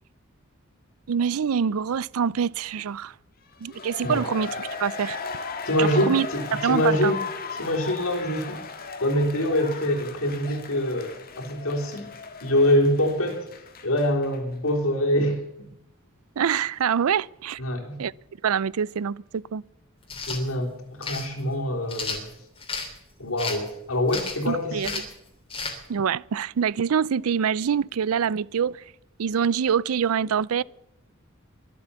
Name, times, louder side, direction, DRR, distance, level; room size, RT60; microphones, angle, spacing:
voice 1, 1.1-3.1 3.6-5.2 5.8-6.3 6.5-7.1 16.4-17.6 18.0-18.1 18.4-19.6 24.5-25.0 25.9-28.8 29.2-30.6, right 7 dB, 90° right, 0.4 m, -25 dB
sound 1, 3.5-14.4 14.7-14.8, left 4 dB, 45° left, 1.7 m, -37 dB
voice 2, 5.7-7.2 7.5-8.6 9.0-12.1 12.4-13.5 13.8-15.7 17.6-18.0 20.3-22.3 23.2-25.0, left 1 dB, 75° left, 3.9 m, -25 dB
sound 2, 20.0-20.4 21.0-21.3 21.9-22.9 23.4-23.7 24.1-24.5 24.8-25.1 25.5-25.7, left 4 dB, 25° left, 3.0 m, -32 dB
23.0 x 7.8 x 7.0 m
head